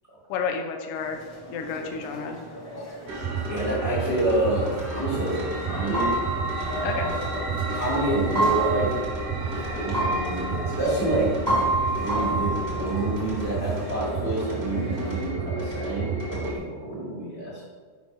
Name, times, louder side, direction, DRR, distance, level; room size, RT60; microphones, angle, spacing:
voice 1, 0.3-1.2 1.5-2.4 6.8-7.1, left 6 dB, 80° left, 4 dB, 1.8 m, -30 dB
sound 1, 0.9-15.2, equal, 55° left, 1.0 m, -41 dB
sound 2, 3.1-16.6, right 3 dB, 50° right, 0.7 m, -31 dB
voice 2, 3.5-6.1 6.6-8.9 9.4-11.3 12.0-17.6, right 1 dB, 90° right, -8 dB, 0.4 m, -28 dB
sound 3, 5.7-13.5, right 2 dB, 20° left, 0.5 m, -29 dB
6.4 x 5.3 x 5.3 m, 1.5 s
omnidirectional pair, 4.6 m